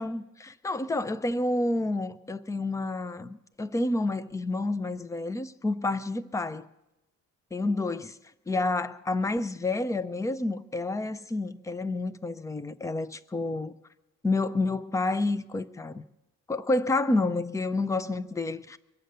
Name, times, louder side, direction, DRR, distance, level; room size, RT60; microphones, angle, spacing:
voice 1, 0.0-6.7 7.5-8.2 8.5-13.7 14.2-16.0 16.5-18.8, left 2 dB, 10° left, 0.5 m, -29 dB
23.5 x 8.0 x 6.6 m
cardioid pair, 145°, 31 cm